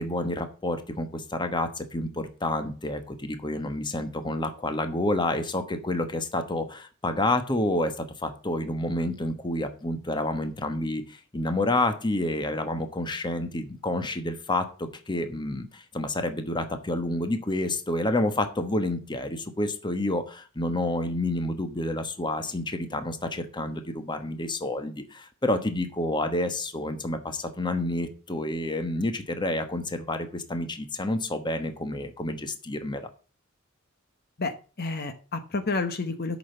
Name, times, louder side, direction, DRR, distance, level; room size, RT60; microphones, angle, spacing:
voice 1, 0.0-33.1, left 1 dB, 20° left, 8 dB, 1.2 m, -29 dB
voice 2, 34.4-36.4, left 3 dB, 50° left, 9 dB, 1.1 m, -30 dB
8.5 x 6.3 x 6.7 m, 0.36 s
head